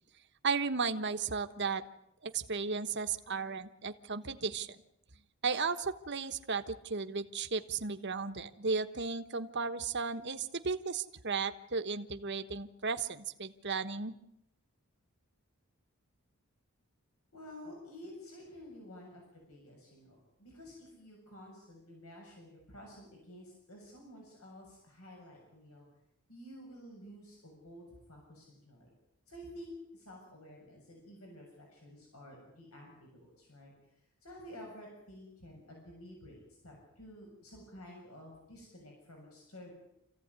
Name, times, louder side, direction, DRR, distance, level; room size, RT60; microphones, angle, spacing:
voice 1, 0.4-1.8 2.2-4.8 5.4-14.1, right 4 dB, 55° right, 9 dB, 1.3 m, -35 dB
voice 2, 17.3-25.9 26.3-28.9 29.3-33.7 34.2-39.7, left 1 dB, 80° left, 0 dB, 7.3 m, -51 dB
26.5 x 15.5 x 9.7 m, 0.81 s
head